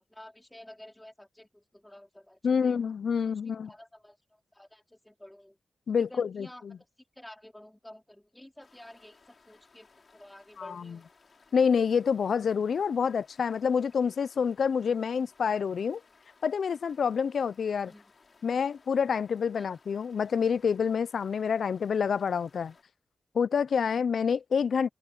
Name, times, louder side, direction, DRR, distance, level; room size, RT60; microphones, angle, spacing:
voice 1, 0.0-2.8 3.2-5.6 6.0-6.8 7.2-11.1 17.9-18.1 19.5-19.8, left 1 dB, 10° left, 4.0 m, -51 dB
voice 2, 2.4-3.7 5.9-6.8 10.6-11.0 11.5-16.0 16.4-17.9 18.4-22.7 23.3-24.9, left 6 dB, 80° left, 0.4 m, -27 dB
sound 1, 8.6-22.8, left 4 dB, 55° left, 6.3 m, -61 dB
cardioid pair, 65°, 0 cm